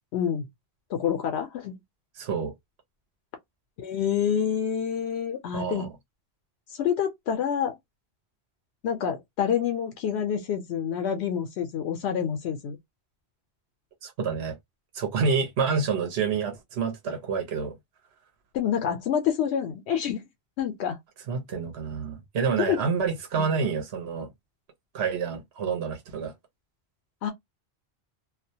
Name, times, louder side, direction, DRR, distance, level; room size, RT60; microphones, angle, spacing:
voice 1, 0.1-0.5 0.9-1.8 3.8-5.9 6.7-7.8 8.8-12.8 18.5-20.2 20.6-21.0 22.7-22.8 23.4-23.7 27.2-27.3, left 8 dB, 85° left, 0.8 m, -27 dB
voice 2, 2.2-2.5 5.5-5.9 14.0-14.6 14.9-17.7 21.3-24.3 24.9-26.3, right 5 dB, 80° right, 0.9 m, -28 dB
2.4 x 2.1 x 2.6 m
omnidirectional pair, 1.1 m